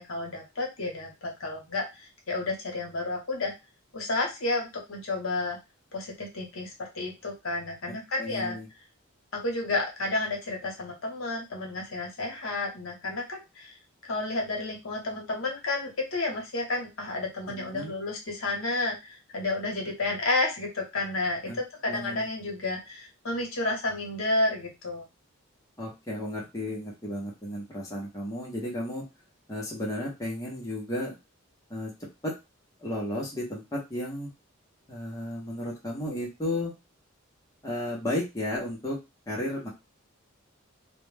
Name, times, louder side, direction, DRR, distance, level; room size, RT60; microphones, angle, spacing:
voice 1, 0.0-3.5 3.9-5.6 5.9-8.6 9.3-13.8 14.0-25.1, left 2 dB, 65° left, 1 dB, 0.8 m, -31 dB
voice 2, 7.9-8.7 17.5-17.9 21.4-21.6 21.8-22.2 25.8-29.1 29.5-31.2 31.7-32.4 32.8-34.3 34.9-36.7 37.6-39.7, left 1 dB, 15° left, -4 dB, 0.6 m, -34 dB
2.1 x 2.1 x 3.2 m, 0.24 s
head